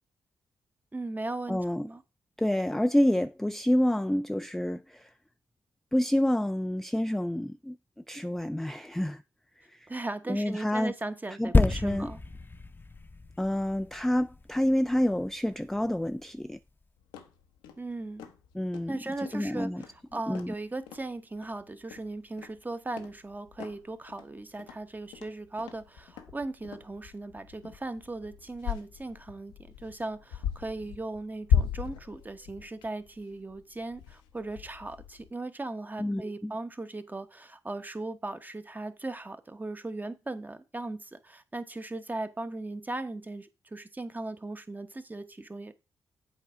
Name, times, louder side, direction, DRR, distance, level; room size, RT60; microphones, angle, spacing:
voice 1, 0.9-2.0 9.9-12.2 17.8-18.3 18.9-19.7 20.1-45.7, right 2 dB, 20° right, 1.1 m, -38 dB
voice 2, 1.5-1.9 2.4-5.1 5.9-7.8 8.1-9.2 9.6-9.9 10.3-10.9 11.4-12.1 13.4-16.6 18.5-19.0 19.3-19.8 20.3-20.5 36.0-36.5, left 1 dB, 5° left, 0.3 m, -28 dB
sound 1, 11.5-15.1 15.8-15.9, left 3 dB, 25° left, 0.7 m, -29 dB
sound 2, 17.0-35.3, left 8 dB, 85° left, 0.8 m, -37 dB
7.9 x 4.2 x 4.9 m
hypercardioid pair, 45°, 8 cm